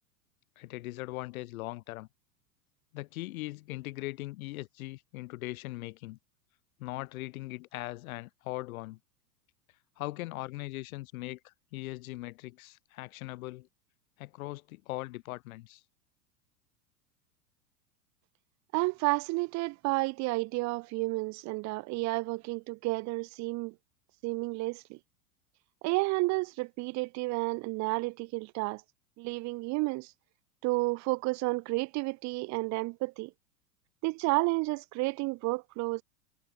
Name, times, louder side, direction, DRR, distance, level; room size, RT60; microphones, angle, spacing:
voice 1, 0.6-2.1 2.9-6.2 6.8-9.0 10.0-13.7 14.2-15.8, left 19 dB, 60° left, 1.4 m, -40 dB
voice 2, 18.7-23.7 24.2-25.0 25.8-28.8 29.2-30.1 30.6-33.3 34.0-36.0, right 24 dB, 35° right, 0.7 m, -31 dB
hypercardioid pair, 95°, 47 cm